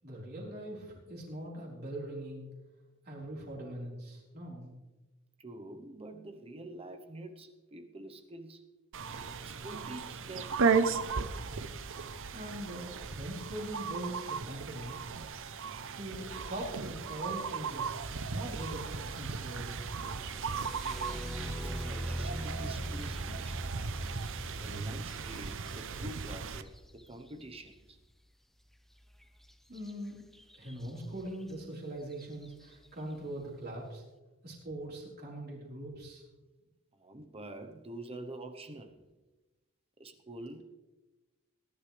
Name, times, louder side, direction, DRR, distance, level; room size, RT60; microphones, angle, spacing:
voice 1, 0.0-2.5 3.1-4.8 12.3-15.0 15.9-20.0 29.7-30.2 30.6-34.0 34.4-36.2, right 1 dB, 45° right, -3 dB, 4.4 m, -42 dB
voice 2, 5.4-8.6 9.4-10.6 21.0-23.7 24.6-28.0 33.8-33.9 37.0-39.0 40.0-40.6, right 1 dB, 25° right, 6 dB, 1.0 m, -46 dB
sound 1, 8.9-26.6, right 5 dB, 60° right, 0.8 m, -36 dB
sound 2, 19.9-27.7 29.8-29.9 30.3-30.9 31.5-31.6 32.1-32.5, equal, ahead, 0.6 m, -41 dB
19.0 x 11.5 x 3.4 m, 1.1 s
head